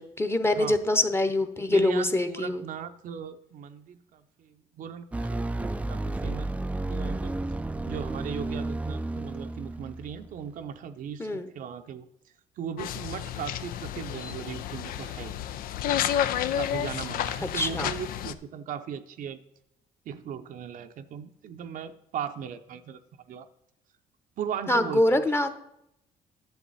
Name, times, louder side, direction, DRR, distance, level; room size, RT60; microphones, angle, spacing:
voice 1, 0.0-2.6 11.2-11.5 17.5-17.9 24.7-25.5, left 1 dB, 15° left, 9 dB, 0.9 m, -24 dB
voice 2, 1.7-7.3 7.8-12.1 12.6-15.4 16.5-19.4 20.1-23.0 23.3-23.5 24.4-25.2, right 8 dB, 65° right, 8 dB, 0.7 m, -38 dB
sound 1, 5.1-10.4, right 2 dB, 10° right, 0.4 m, -32 dB
sound 2, 12.8-18.3, left 10 dB, 75° left, 0.5 m, -31 dB
10.5 x 7.3 x 4.1 m, 0.79 s
cardioid pair, 85°, 15 cm